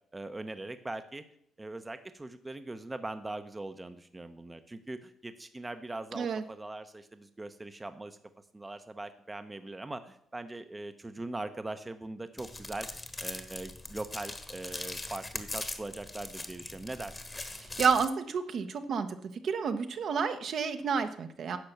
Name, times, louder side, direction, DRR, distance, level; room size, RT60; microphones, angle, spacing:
voice 1, 0.1-1.2 1.6-8.2 8.5-12.9 13.2-17.2, right 2 dB, 15° right, 9 dB, 0.8 m, -41 dB
sound 1, 12.4-18.0, left 2 dB, 20° left, 1.2 m, -41 dB
voice 2, 17.6-19.1 19.4-21.6, right 6 dB, 60° right, 8 dB, 1.0 m, -30 dB
10.5 x 6.0 x 6.6 m, 0.68 s
cardioid pair, 90°, 0 cm